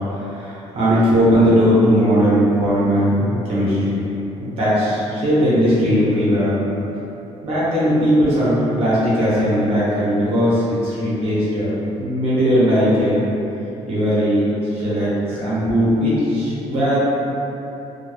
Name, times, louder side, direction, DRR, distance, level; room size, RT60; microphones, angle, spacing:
voice 1, 0.1-4.0 4.4-6.5 7.4-11.7 12.0-13.2 13.9-17.1, equal, 55° right, -10 dB, 0.8 m, -18 dB
2.3 x 2.2 x 3.1 m, 3.0 s
cardioid pair, 175°, 12 cm